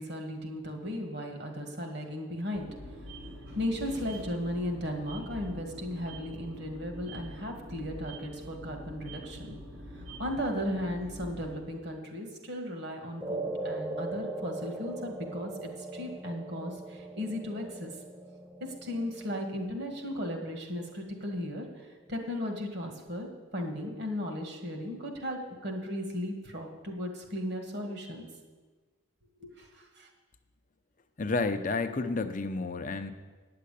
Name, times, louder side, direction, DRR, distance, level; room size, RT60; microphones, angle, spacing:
voice 1, 0.0-2.7 3.6-9.6 9.9-17.9 18.6-23.3 23.5-28.2 29.4-30.1, left 1 dB, 55° right, 3 dB, 1.8 m, -36 dB
sound 1, 2.5-11.6, equal, 75° right, 3.7 m, -45 dB
sound 2, 13.2-21.7, right 2 dB, 10° right, 0.4 m, -40 dB
voice 2, 31.2-33.1, left 3 dB, 40° left, 9 dB, 0.6 m, -30 dB
9.5 x 7.6 x 8.4 m, 1.3 s
head